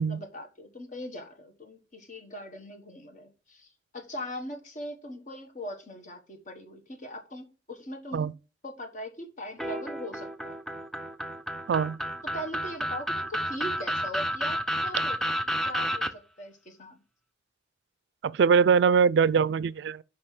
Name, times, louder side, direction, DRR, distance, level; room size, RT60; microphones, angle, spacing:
voice 1, 0.0-8.3 8.6-10.6 12.2-17.0, equal, 45° left, 1.4 m, -40 dB
sound 1, 9.6-16.1, equal, ahead, 0.6 m, -31 dB
voice 2, 11.7-12.0 18.2-20.0, right 6 dB, 70° right, 0.3 m, -22 dB
5.4 x 5.3 x 6.0 m
head